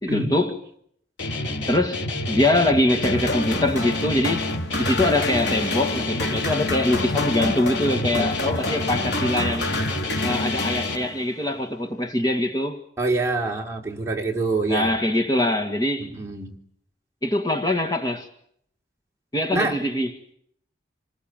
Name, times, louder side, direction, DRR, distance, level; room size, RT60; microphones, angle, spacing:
voice 1, 0.0-0.6 1.7-4.5 4.8-9.7 10.2-12.8 14.7-16.1 17.2-18.3 19.3-20.1, left 1 dB, 20° left, 1.9 m, -23 dB
Guitar, 1.2-11.0, left 2 dB, 90° left, 3.4 m, -29 dB
sound 1, 3.0-11.4, left 2 dB, 70° left, 3.4 m, -29 dB
voice 2, 13.0-15.0 16.0-16.6 19.5-19.8, right 3 dB, 15° right, 3.5 m, -25 dB
28.0 x 21.0 x 9.1 m
head